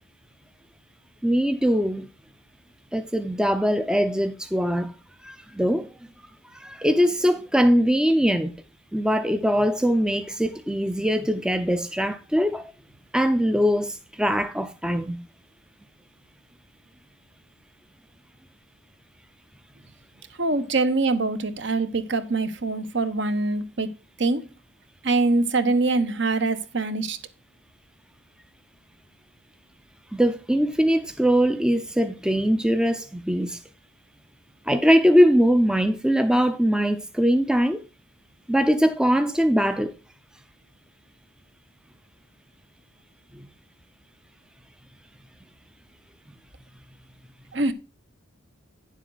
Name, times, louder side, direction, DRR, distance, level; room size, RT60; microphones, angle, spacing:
voice 1, 1.2-2.1 2.9-4.9 5.2-5.9 6.5-8.5 8.9-12.7 13.1-15.2 30.1-33.6 34.7-37.8 38.5-39.9 43.3-43.5, equal, 5° right, 0.5 m, -22 dB
voice 2, 20.4-24.5 25.0-27.2 47.5-47.7, right 3 dB, 60° right, 1.0 m, -24 dB
9.9 x 7.4 x 3.9 m
head